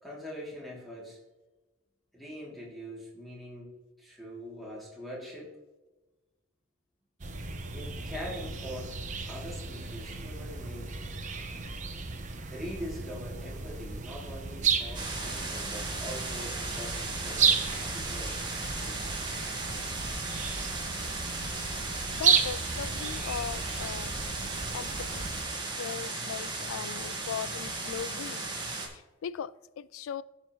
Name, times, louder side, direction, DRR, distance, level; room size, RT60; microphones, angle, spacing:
voice 1, 0.0-1.2 2.1-3.7 4.0-5.5 7.7-9.0 9.3-10.9 12.5-18.5, equal, ahead, 2.7 m, -43 dB
sound 1, 7.2-25.4, right 6 dB, 35° right, 0.9 m, -33 dB
sound 2, 14.9-28.9, right 3 dB, 20° right, 1.6 m, -36 dB
voice 2, 22.1-24.2 24.7-25.4 25.8-28.5 28.9-30.2, left 8 dB, 85° left, 0.3 m, -38 dB
15.5 x 5.6 x 3.1 m
head